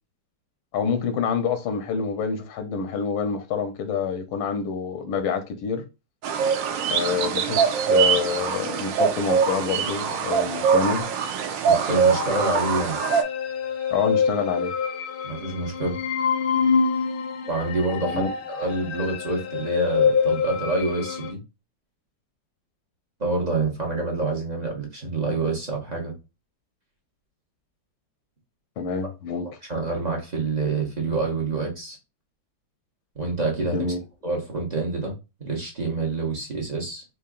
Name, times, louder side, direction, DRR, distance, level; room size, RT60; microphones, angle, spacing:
voice 1, 0.7-5.8 6.9-11.1 13.9-14.7 18.0-18.3 28.8-29.5 33.7-34.0, left 6 dB, 85° left, 1.4 m, -27 dB
sound 1, 6.2-13.2, right 6 dB, 75° right, 1.3 m, -23 dB
voice 2, 11.7-13.0 15.2-16.0 17.4-21.4 23.2-26.1 29.7-32.0 33.1-33.9 34.2-35.1 35.4-37.0, right 3 dB, 30° right, 0.8 m, -27 dB
sound 2, 12.0-21.3, left 6 dB, 65° left, 1.0 m, -26 dB
4.6 x 2.8 x 2.3 m
omnidirectional pair, 2.1 m